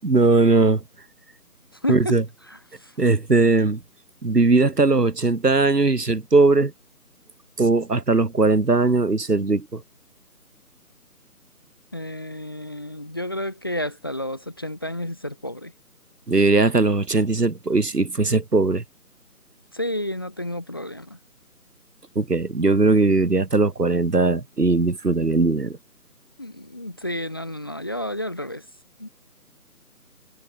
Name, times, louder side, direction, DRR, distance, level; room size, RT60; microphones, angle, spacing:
voice 1, 0.0-0.8 1.9-2.2 3.0-3.8 4.2-6.7 7.6-9.8 16.3-18.8 22.2-25.8, right 3 dB, 85° right, 2.4 m, -19 dB
voice 2, 1.8-2.1 11.9-15.7 19.7-21.2 26.4-28.6 29.0-29.1, left 1 dB, 15° left, 1.0 m, -30 dB
figure-of-eight pair, 160°, 46 cm